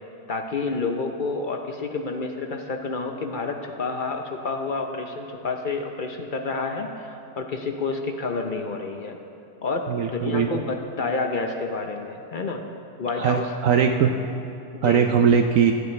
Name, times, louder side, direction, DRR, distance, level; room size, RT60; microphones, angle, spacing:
voice 1, 0.3-9.2 9.6-12.6 13.0-13.5 14.7-15.1, left 3 dB, 65° left, 4 dB, 0.5 m, -29 dB
voice 2, 9.9-10.5 13.2-14.1 14.8-15.7, right 7 dB, 70° right, 5 dB, 0.8 m, -20 dB
22.0 x 9.3 x 3.2 m, 2.6 s
omnidirectional pair, 1.9 m